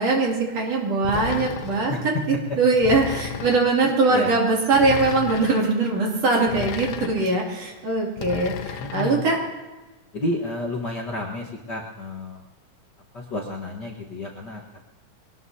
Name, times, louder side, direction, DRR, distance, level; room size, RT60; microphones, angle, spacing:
voice 1, 0.0-9.4, right 3 dB, 55° right, -2 dB, 3.8 m, -22 dB
sound 1, 1.0-1.9 2.8-3.7 4.7-5.6 6.5-7.4 8.2-9.1, left 9 dB, 90° left, 2.3 m, -32 dB
voice 2, 8.8-9.2 10.1-12.4 13.1-14.8, left 1 dB, 45° left, -3 dB, 1.6 m, -31 dB
23.0 x 19.0 x 2.8 m, 1.2 s
omnidirectional pair, 3.5 m